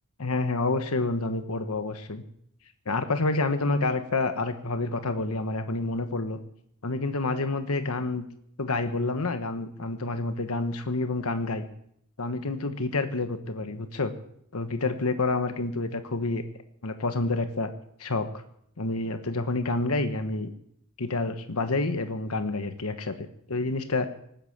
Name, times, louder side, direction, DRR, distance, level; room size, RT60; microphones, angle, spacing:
voice 1, 0.2-2.2 2.9-6.4 6.8-8.3 8.6-11.6 12.2-14.1 14.5-16.4 16.8-17.7 18.0-18.3 18.8-20.5 21.0-24.1, left 3 dB, 70° left, 8 dB, 1.3 m, -28 dB
19.0 x 10.0 x 7.3 m, 0.70 s
head